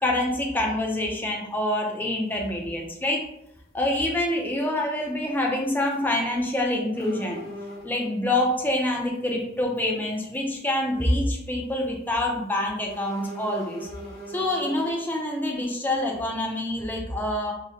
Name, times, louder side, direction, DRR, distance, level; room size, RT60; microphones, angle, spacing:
voice 1, 0.0-3.2 3.7-7.4 7.8-13.9 14.3-17.5, left 1 dB, 10° left, -1 dB, 0.5 m, -26 dB
sound 1, 1.2-1.3 2.9-3.1 3.5-3.6 3.8-3.9 5.8-6.1 6.4-6.5 6.9-8.1 9.1-9.3 9.8-9.9 10.3-10.6 11.0-11.1 12.9-15.0, equal, 50° left, 1.0 m, -40 dB
4.9 x 2.1 x 2.7 m, 0.80 s
head